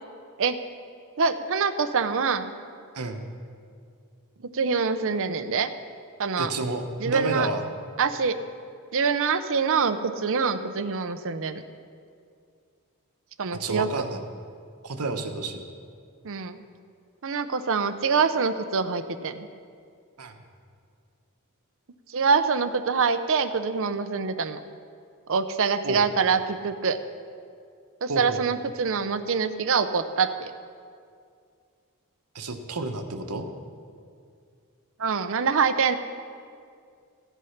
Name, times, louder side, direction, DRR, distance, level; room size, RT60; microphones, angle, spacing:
voice 1, 1.2-2.5 4.5-5.7 6.2-6.5 7.0-7.5 8.0-8.3 8.9-11.6 13.4-13.9 16.2-16.6 17.2-19.5 22.1-24.6 25.3-27.0 28.0-30.5 35.0-35.9, right 5 dB, 60° right, 10 dB, 0.6 m, -25 dB
voice 2, 6.4-7.6 13.6-14.2 14.8-15.6 20.2-20.4 25.8-26.0 28.1-28.4 32.3-33.5, right 2 dB, 90° right, 6 dB, 1.0 m, -30 dB
14.5 x 8.2 x 5.8 m, 2.3 s
head